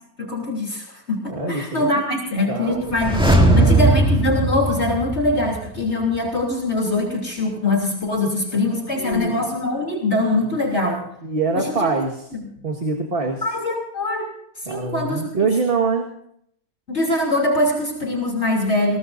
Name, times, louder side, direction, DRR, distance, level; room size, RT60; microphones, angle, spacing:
voice 1, 0.2-3.3 3.6-11.0 11.5-11.9 13.4-14.3 14.6-15.3 16.9-19.0, left 2 dB, 45° left, -1 dB, 3.5 m, -23 dB
voice 2, 1.3-1.9 2.5-3.0 3.2-4.0 8.2-8.3 8.9-9.4 11.2-12.2 12.6-13.4 14.7-16.1, right 3 dB, 40° right, 1 dB, 1.9 m, -24 dB
sound 1, 2.8-5.8 6.0-6.1, right 2 dB, 5° right, 2.3 m, -18 dB
21.5 x 19.0 x 2.7 m, 0.70 s
omnidirectional pair, 1.5 m